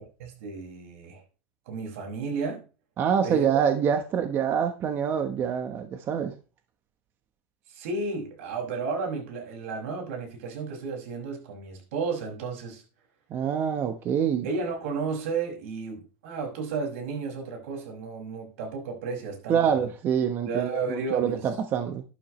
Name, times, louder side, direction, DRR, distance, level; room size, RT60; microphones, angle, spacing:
voice 1, 0.2-1.2 1.7-2.6 3.2-3.5 7.7-12.8 14.4-19.9 20.4-21.5, right 4 dB, 75° right, 6.1 m, -33 dB
voice 2, 3.0-6.3 13.3-14.5 19.5-22.0, right 8 dB, 30° right, 1.1 m, -26 dB
12.0 x 12.0 x 3.2 m
supercardioid pair, 160°, 7 cm